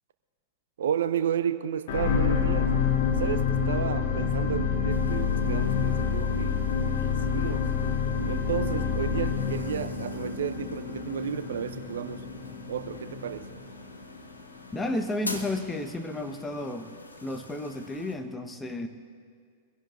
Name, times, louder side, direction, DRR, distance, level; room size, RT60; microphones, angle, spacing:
voice 1, 0.8-2.7 3.2-6.6 7.0-7.7 8.2-12.3 12.7-13.6, right 9 dB, 65° right, 12 dB, 0.6 m, -32 dB
sound 1, 1.9-14.3 14.8-14.9, left 6 dB, 60° left, 1.7 m, -28 dB
sound 2, 4.9-18.2, left 2 dB, 85° left, 1.2 m, -46 dB
voice 2, 14.7-16.9 17.2-18.9, left 2 dB, 10° left, 6 dB, 1.1 m, -32 dB
23.5 x 16.5 x 2.6 m, 2.1 s
figure-of-eight pair, 95°, 0 cm